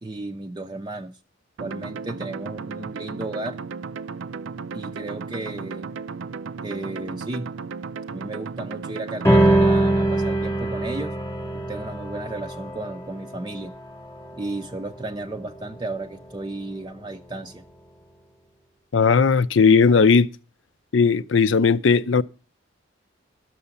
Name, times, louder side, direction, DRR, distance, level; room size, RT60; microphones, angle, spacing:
voice 1, 0.0-1.2 1.6-3.6 4.7-6.0 6.6-7.5 8.1-11.1 11.5-13.8 14.4-17.7, right 2 dB, 20° right, 0.5 m, -34 dB
sound 1, 1.6-9.6, right 5 dB, 75° right, 0.5 m, -35 dB
sound 2, 9.2-16.0, right 1 dB, 15° left, 1.1 m, -23 dB
voice 2, 18.9-20.3 20.9-22.2, left 5 dB, 70° left, 0.5 m, -17 dB
12.0 x 6.7 x 7.0 m
head